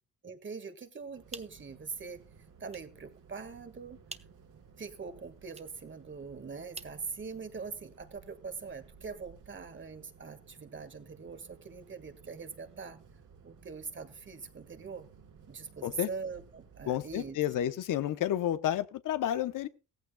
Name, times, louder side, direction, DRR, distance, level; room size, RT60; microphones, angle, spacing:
voice 1, 0.2-2.2 2.6-4.0 4.8-13.0 13.4-15.1 15.5-17.4, right 5 dB, 35° right, 9 dB, 1.8 m, -43 dB
sound 1, 1.0-7.8, right 3 dB, 20° right, 0.9 m, -54 dB
sound 2, 1.1-17.3, right 6 dB, 65° right, 3.1 m, -57 dB
voice 2, 16.9-19.7, left 11 dB, 65° left, 12 dB, 0.9 m, -31 dB
16.0 x 14.5 x 2.3 m, 0.31 s
supercardioid pair, 70°, 34 cm